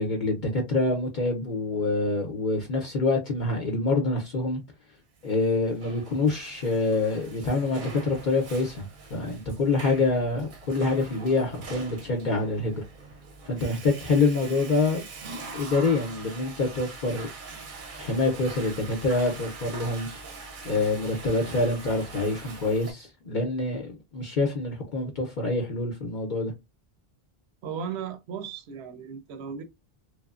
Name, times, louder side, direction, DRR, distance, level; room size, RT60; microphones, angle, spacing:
voice 1, 0.0-4.6 5.2-12.8 13.5-15.0 15.5-17.3 18.0-20.1 20.6-26.5, left 3 dB, 55° left, 0.7 m, -26 dB
Water / Toilet flush, 5.4-22.9, right 4 dB, 55° right, 0.7 m, -43 dB
voice 2, 27.6-29.6, right 7 dB, 85° right, 0.9 m, -36 dB
3.0 x 2.0 x 2.3 m
omnidirectional pair, 1.1 m